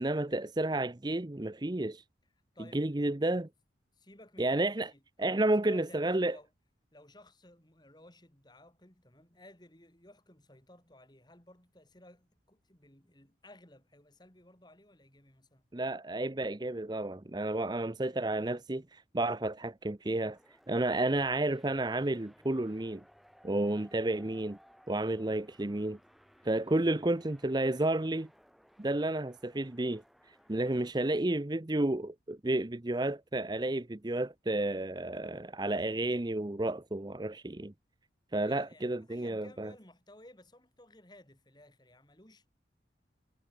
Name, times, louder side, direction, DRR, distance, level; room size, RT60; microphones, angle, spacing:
voice 1, 0.0-2.0 2.7-3.5 4.4-4.9 5.2-6.4 15.7-20.4 20.7-23.0 23.4-24.6 24.9-26.0 26.4-28.3 28.8-30.0 30.5-37.7 38.3-39.7, right 2 dB, 20° right, 0.7 m, -31 dB
voice 2, 2.5-3.0 3.9-6.5 6.9-15.6 18.0-18.3 23.7-24.0 26.6-27.1 30.6-31.2 38.4-42.5, left 1 dB, 25° left, 3.7 m, -57 dB
sound 1, 20.3-30.9, equal, ahead, 4.6 m, -61 dB
head